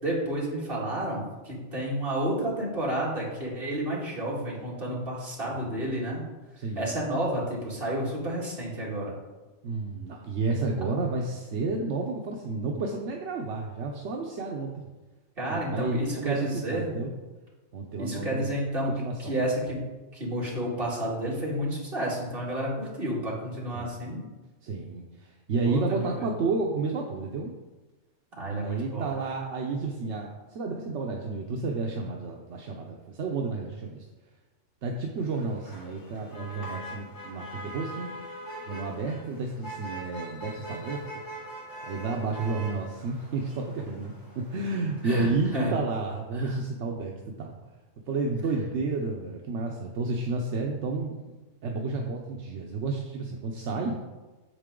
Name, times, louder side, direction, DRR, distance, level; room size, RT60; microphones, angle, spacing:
voice 1, 0.0-6.2 6.8-9.2 15.4-16.9 18.0-19.9 20.1-24.2 25.6-26.3 28.4-29.1 45.0-45.7 46.3-46.6, right 1 dB, 50° right, -4 dB, 2.4 m, -30 dB
voice 2, 5.5-5.9 6.6-6.9 9.6-14.8 15.5-17.1 17.7-18.5 19.0-19.4 23.7-24.0 24.6-27.5 28.5-34.0 34.8-38.1 38.7-41.0 41.8-47.6 48.1-51.2 51.6-54.0, right 3 dB, 75° right, 1 dB, 1.1 m, -31 dB
Motor vehicle (road), 35.2-45.7, right 1 dB, 70° left, 3.0 m, -42 dB
8.4 x 6.7 x 3.7 m, 1.2 s
omnidirectional pair, 1.2 m